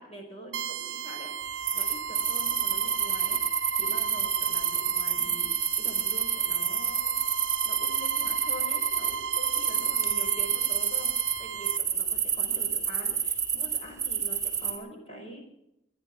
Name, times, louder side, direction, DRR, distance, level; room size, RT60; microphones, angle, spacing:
voice 1, 0.0-1.3 1.7-3.4 3.8-7.2 7.6-11.1 11.4-15.4, equal, 35° left, 2 dB, 5.2 m, -44 dB
sound 1, 0.5-11.8, right 6 dB, 80° right, 0.8 m, -35 dB
sound 2, 1.7-11.4 11.6-14.8, right 7 dB, 15° right, 2.9 m, -28 dB
24.0 x 10.0 x 4.6 m, 0.82 s
head